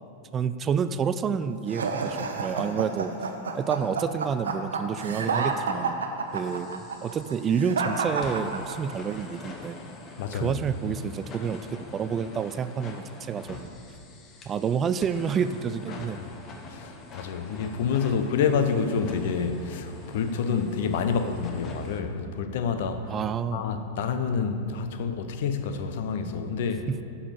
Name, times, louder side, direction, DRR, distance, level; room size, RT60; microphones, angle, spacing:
voice 1, 0.3-3.1 3.5-6.0 6.3-9.8 10.3-13.7 14.5-16.2 23.1-23.7 26.9-27.0, right 7 dB, 25° right, 12 dB, 0.3 m, -29 dB
sound 1, 1.7-9.1, right 4 dB, 70° right, 0.9 m, -30 dB
sound 2, 5.0-5.7 6.3-22.0, left 3 dB, 30° left, 1.1 m, -45 dB
voice 2, 10.2-10.6 16.1-16.3 16.7-23.1 23.5-26.9, left 6 dB, 55° left, 9 dB, 0.7 m, -28 dB
11.5 x 5.5 x 6.8 m, 2.5 s
figure-of-eight pair, 90°, 0 cm